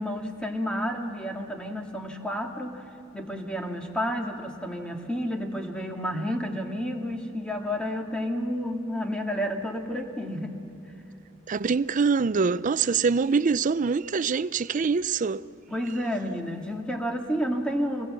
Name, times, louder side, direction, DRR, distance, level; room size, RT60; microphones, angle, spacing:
voice 1, 0.0-2.8 3.1-10.6 15.7-18.1, equal, 5° left, 1.9 m, -30 dB
voice 2, 11.5-15.4, right 5 dB, 40° right, 0.4 m, -24 dB
27.0 x 20.0 x 7.5 m
head